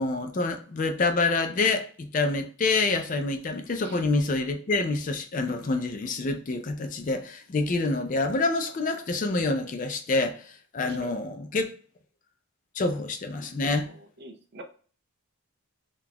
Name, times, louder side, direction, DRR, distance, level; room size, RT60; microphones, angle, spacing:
voice 1, 0.0-10.4 10.7-11.6 12.8-13.9, left 3 dB, 35° left, 0.4 m, -27 dB
voice 2, 10.8-11.2 13.9-14.6, right 2 dB, 45° right, 0.5 m, -45 dB
3.8 x 2.3 x 2.8 m
head